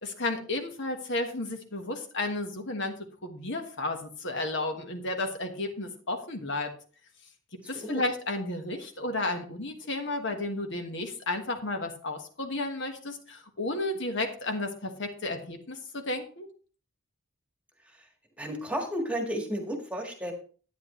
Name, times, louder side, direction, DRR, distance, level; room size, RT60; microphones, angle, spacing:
voice 1, 0.0-2.9 3.2-6.7 7.7-16.5, left 2 dB, 55° left, 5 dB, 1.4 m, -32 dB
voice 2, 7.6-8.0 17.9-18.0 18.4-20.3, equal, 5° right, 3 dB, 1.6 m, -33 dB
10.5 x 9.5 x 3.2 m, 0.40 s
head